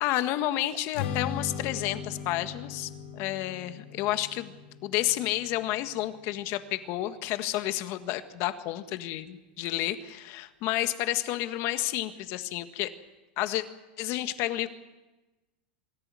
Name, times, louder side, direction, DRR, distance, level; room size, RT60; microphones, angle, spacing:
voice 1, 0.0-4.5 4.8-12.9 13.4-13.6 14.0-14.7, left 15 dB, 45° left, 10 dB, 1.6 m, -30 dB
Strum, 0.9-7.2, left 7 dB, 75° left, 3.4 m, -39 dB
24.0 x 13.5 x 9.7 m, 1.1 s
supercardioid pair, 135°, 6 cm